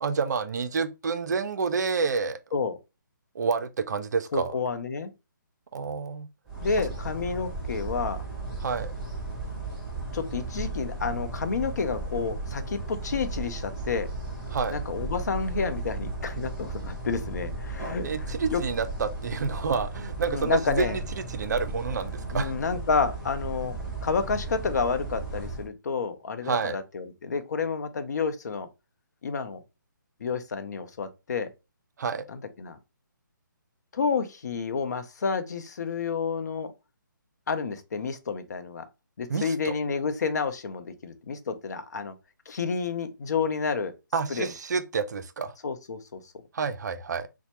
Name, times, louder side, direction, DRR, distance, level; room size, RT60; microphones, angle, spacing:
voice 1, 0.0-2.4 3.3-4.5 5.7-6.3 8.6-8.9 14.5-14.8 18.0-22.5 26.4-26.8 32.0-32.2 39.3-39.7 44.1-45.5 46.5-47.3, right 5 dB, 55° right, 0.4 m, -29 dB
voice 2, 4.3-5.1 6.6-8.2 10.1-14.1 14.7-18.6 20.3-21.0 22.3-23.7 24.0-28.7 29.2-29.6 30.2-31.5 32.3-32.8 33.9-36.7 37.5-38.8 39.2-42.1 42.5-43.9 44.3-44.5 45.6-46.2, left 5 dB, 55° left, 0.6 m, -30 dB
sound 1, 6.5-25.7, right 2 dB, 5° right, 0.8 m, -35 dB
4.2 x 2.1 x 2.9 m
hypercardioid pair, 150°, 11 cm